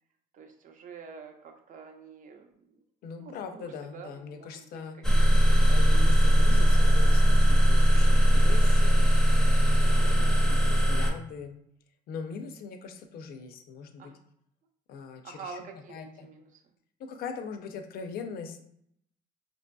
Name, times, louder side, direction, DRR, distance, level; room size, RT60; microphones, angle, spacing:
voice 1, 0.3-2.5 3.2-4.8 5.4-6.3 10.0-10.3 14.0-14.2 15.2-16.6, right 5 dB, 50° right, 4 dB, 0.6 m, -47 dB
voice 2, 3.0-5.1 5.7-9.1 9.8-11.6 12.1-14.1 14.9-16.3 17.0-18.6, left 5 dB, 65° left, 6 dB, 0.4 m, -41 dB
sound 1, 5.0-11.1, equal, 5° left, 0.5 m, -20 dB
2.9 x 2.6 x 2.2 m, 0.72 s
cardioid pair, 110°, 17 cm